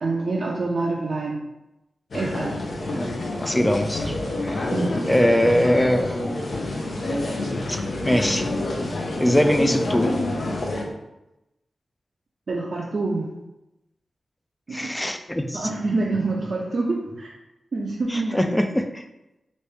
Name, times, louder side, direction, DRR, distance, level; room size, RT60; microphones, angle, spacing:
voice 1, 0.0-1.4 2.1-2.6 4.7-5.0 12.5-13.3 14.7-14.9 15.5-17.3 17.7-18.4, right 3 dB, 60° right, -3 dB, 0.5 m, -26 dB
sound 1, 2.1-10.8, left 1 dB, 65° left, 0.6 m, -27 dB
voice 2, 3.4-4.2 4.4-4.7 5.1-6.2 7.7-8.5 9.2-10.1 14.7-15.7 18.1-19.0, equal, 10° left, 7 dB, 0.3 m, -22 dB
3.1 x 2.6 x 3.3 m, 0.94 s
cardioid pair, 70°, 0 cm